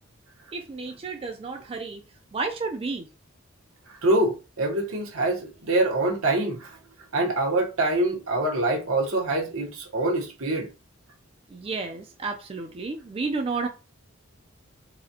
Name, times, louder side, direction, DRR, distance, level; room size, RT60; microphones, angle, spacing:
voice 1, 0.5-2.0 2.3-3.1 11.5-13.7, right 4 dB, 30° right, 0.4 m, -31 dB
voice 2, 4.0-6.8 7.1-10.7, right 2 dB, 80° right, 1.0 m, -25 dB
4.0 x 2.2 x 2.7 m
head